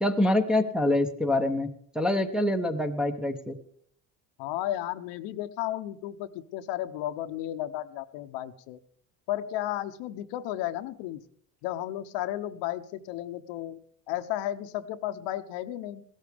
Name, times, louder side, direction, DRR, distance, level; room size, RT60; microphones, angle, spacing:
voice 1, 0.0-1.7 1.9-3.6, left 1 dB, ahead, 4 dB, 0.7 m, -25 dB
voice 2, 4.4-8.8 9.3-11.2 11.6-13.8 14.1-16.0, left 13 dB, 85° left, 10 dB, 0.9 m, -33 dB
17.0 x 13.0 x 3.5 m, 0.63 s
cardioid pair, 140°, 43 cm